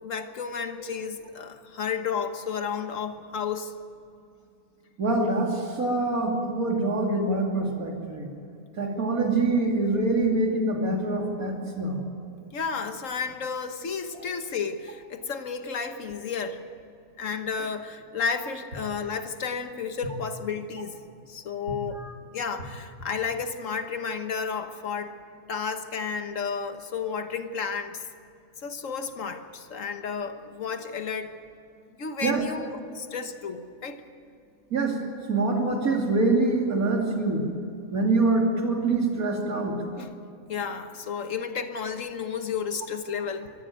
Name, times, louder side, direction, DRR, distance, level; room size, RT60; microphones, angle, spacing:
voice 1, 0.0-3.7 12.5-16.6 17.2-21.0 21.3-22.0 22.3-25.2 25.5-28.0 28.6-31.3 32.0-34.0 40.0-40.1 40.5-43.5, left 6 dB, 60° left, 8 dB, 1.6 m, -32 dB
voice 2, 5.0-8.3 8.8-12.0 14.1-14.2 22.0-22.1 32.2-32.4 34.7-35.0 35.3-37.4 37.9-39.8, right 2 dB, 75° right, 1 dB, 3.2 m, -25 dB
23.5 x 14.0 x 9.0 m, 2.6 s
omnidirectional pair, 1.5 m